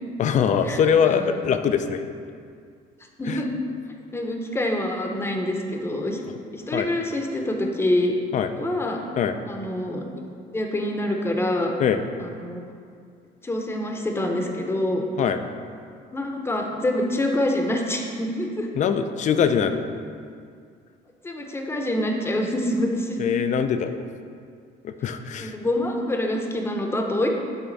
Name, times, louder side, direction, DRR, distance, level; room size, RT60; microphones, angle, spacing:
voice 1, 0.2-2.0 3.3-3.4 6.7-6.9 8.3-8.5 9.2-9.4 11.8-12.0 15.2-15.4 18.7-19.9 23.2-24.0 24.8-25.5, left 7 dB, 45° left, 9 dB, 0.4 m, -22 dB
voice 2, 3.2-3.6 4.1-6.2 6.5-8.1 8.6-9.0 9.5-10.0 10.5-11.7 12.2-12.6 13.4-15.0 16.1-18.7 21.2-23.2 25.4-27.3, left 1 dB, 15° left, 2 dB, 0.8 m, -26 dB
9.0 x 3.5 x 4.0 m, 2.2 s
cardioid pair, 110°, 17 cm